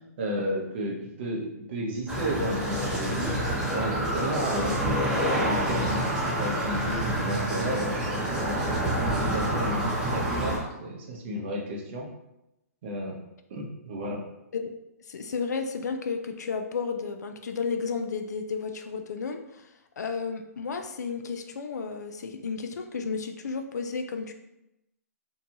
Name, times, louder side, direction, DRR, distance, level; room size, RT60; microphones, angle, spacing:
voice 1, 0.2-3.3 3.7-6.0 6.4-8.8 9.1-12.1 12.8-13.2 13.5-14.2, equal, 40° right, 0 dB, 0.6 m, -33 dB
sound 1, 2.1-10.6, right 1 dB, 10° right, 0.7 m, -27 dB
voice 2, 15.1-19.7 20.0-24.3, left 5 dB, 85° left, 6 dB, 0.4 m, -32 dB
2.7 x 2.2 x 2.8 m, 0.91 s
hypercardioid pair, 150°, 9 cm